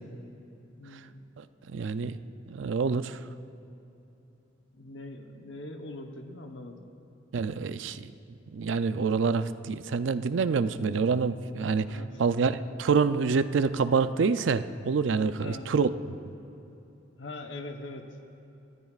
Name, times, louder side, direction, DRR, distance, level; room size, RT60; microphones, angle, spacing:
voice 1, 0.8-1.2 4.8-6.8 11.9-12.2 15.4-15.7 17.2-18.1, left 2 dB, 75° left, 4 dB, 1.0 m, -42 dB
voice 2, 1.7-2.1 2.5-3.2 7.3-8.0 8.5-15.9, right 5 dB, 80° right, 12 dB, 0.4 m, -26 dB
23.5 x 13.5 x 2.4 m, 2.9 s
head